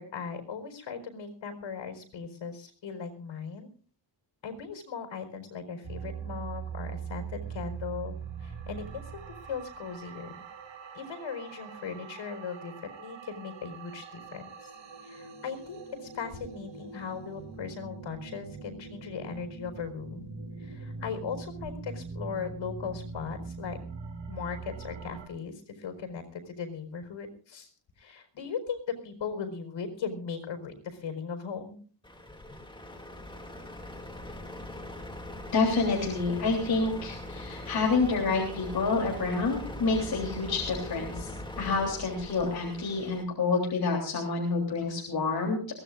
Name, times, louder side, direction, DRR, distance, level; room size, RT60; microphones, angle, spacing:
voice 1, 0.0-3.7 4.4-10.5 10.9-14.7 15.0-23.8 24.3-27.7 28.0-31.8, left 6 dB, 90° left, 5 dB, 4.4 m, -38 dB
sound 1, 5.8-25.3, right 5 dB, 80° right, 5.5 m, -42 dB
Truck, 32.0-43.2, left 1 dB, 10° left, 2.5 m, -41 dB
voice 2, 35.5-41.3 41.6-45.6, left 4 dB, 55° left, -1 dB, 3.5 m, -28 dB
22.5 x 17.0 x 2.5 m, 0.41 s
wide cardioid pair, 150°, 45 cm